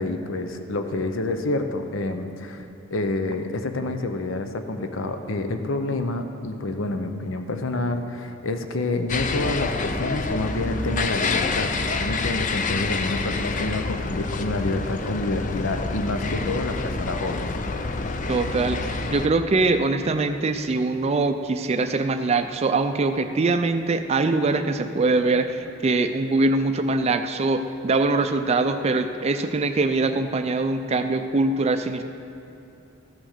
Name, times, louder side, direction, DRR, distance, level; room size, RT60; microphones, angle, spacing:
voice 1, 0.0-17.5, left 2 dB, 75° left, 7 dB, 0.7 m, -28 dB
sound 1, 9.1-19.3, left 3 dB, 40° left, 0.5 m, -27 dB
voice 2, 18.3-32.0, right 3 dB, 30° right, 8 dB, 0.4 m, -23 dB
14.5 x 6.3 x 6.5 m, 2.8 s
head